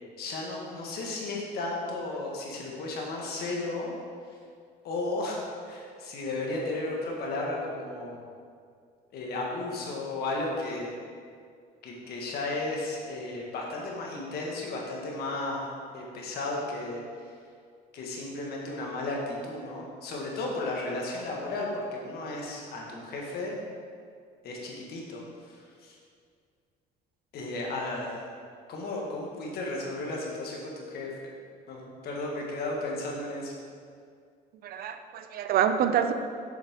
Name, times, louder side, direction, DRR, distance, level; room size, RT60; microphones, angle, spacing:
voice 1, 0.2-3.9 4.8-5.4 5.6-8.3 9.1-11.0 11.8-15.7 15.9-17.0 17.9-23.6 24.4-25.2 25.5-26.0 27.3-28.2 28.7-31.1 31.7-33.5, left 2 dB, 70° left, -2 dB, 1.7 m, -34 dB
voice 2, 34.6-36.1, right 9 dB, 65° right, 9 dB, 0.5 m, -26 dB
7.8 x 6.4 x 3.7 m, 2.2 s
cardioid pair, 110°, 17 cm